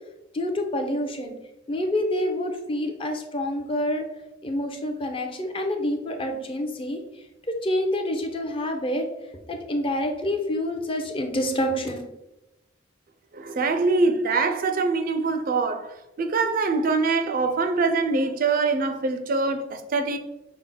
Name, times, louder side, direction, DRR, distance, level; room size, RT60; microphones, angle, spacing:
voice 1, 0.3-1.3 1.7-4.0 4.4-7.0 7.5-9.1 9.5-12.0, left 1 dB, 30° left, 0.5 m, -27 dB
voice 2, 13.3-15.9 16.2-20.2, right 3 dB, 45° right, 0.4 m, -24 dB
5.9 x 2.1 x 3.7 m
head